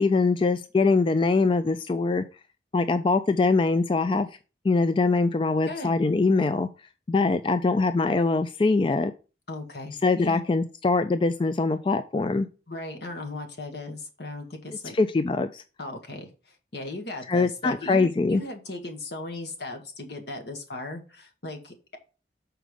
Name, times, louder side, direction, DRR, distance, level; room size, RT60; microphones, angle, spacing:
voice 1, 0.0-2.2 2.7-4.3 4.6-6.7 7.1-9.1 10.0-12.5 14.9-15.6 17.3-18.4, left 3 dB, 30° left, 10 dB, 0.3 m, -23 dB
voice 2, 5.7-6.0 9.5-10.4 12.7-15.0 15.8-22.0, left 2 dB, 75° left, 4 dB, 1.6 m, -37 dB
6.3 x 4.5 x 5.1 m, 0.33 s
head